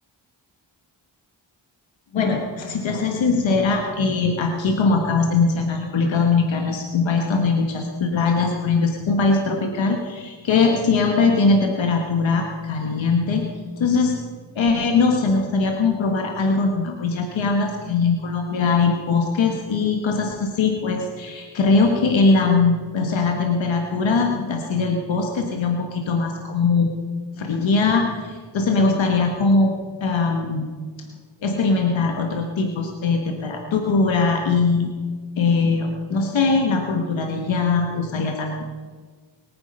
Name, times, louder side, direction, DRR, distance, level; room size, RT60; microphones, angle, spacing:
voice 1, 2.1-13.4 13.8-14.2 14.5-27.0 27.4-29.7 30.0-30.7 31.0-31.1 31.4-34.9 35.4-38.6, left 4 dB, 90° left, 2 dB, 1.6 m, -21 dB
22.5 x 9.7 x 5.4 m, 1.5 s
cardioid pair, 60°, 44 cm